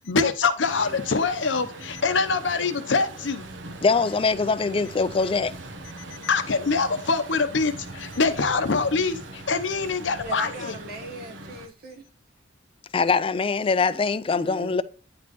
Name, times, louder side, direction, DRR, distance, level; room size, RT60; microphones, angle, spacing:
voice 1, 0.0-3.5 6.2-10.8, left 4 dB, 70° left, 0.8 m, -24 dB
Truck, 0.6-11.7, right 2 dB, 70° right, 0.9 m, -41 dB
voice 2, 3.8-5.5 12.9-14.8, left 4 dB, 30° left, 0.4 m, -23 dB
voice 3, 10.2-12.1 14.3-14.8, equal, 50° right, 1.5 m, -38 dB
9.6 x 4.2 x 3.0 m
head